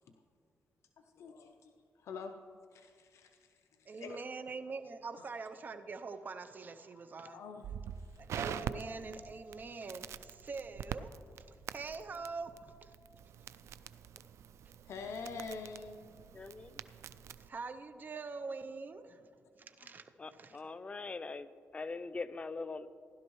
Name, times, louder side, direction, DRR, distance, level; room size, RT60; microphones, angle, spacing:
voice 1, 1.0-2.3 2.7-4.3 5.2-5.3 7.2-8.2 14.8-16.0 16.5-16.6 19.8-19.9 20.5-20.6, left 4 dB, 75° left, 5 dB, 0.6 m, -47 dB
voice 2, 3.9-7.4 8.2-11.1 11.5-12.9 17.5-20.6, right 4 dB, 40° right, 8 dB, 0.6 m, -44 dB
Crackle, 7.6-17.5, right 8 dB, 75° right, 0.3 m, -45 dB
sound 1, 8.4-17.9, right 5 dB, 60° right, 1.4 m, -54 dB
voice 3, 16.3-16.8 20.2-22.9, left 3 dB, 25° left, 13 dB, 0.4 m, -42 dB
15.5 x 11.5 x 3.1 m, 2.2 s
cardioid pair, 115°, 5 cm